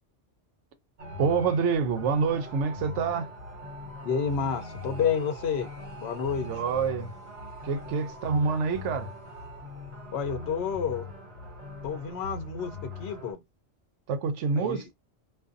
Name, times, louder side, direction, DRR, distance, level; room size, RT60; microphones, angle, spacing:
sound 1, 1.0-13.3, left 2 dB, 55° right, 1.2 m, -41 dB
voice 1, 1.2-3.3 6.4-7.1 7.6-9.1 14.1-14.9, right 5 dB, 75° right, 0.9 m, -27 dB
voice 2, 4.0-5.7 6.0-6.5 8.5-8.6 10.1-11.1 11.8-12.7 13.0-13.4 14.6-14.8, left 6 dB, 65° left, 0.8 m, -29 dB
2.5 x 2.3 x 2.4 m
omnidirectional pair, 1.3 m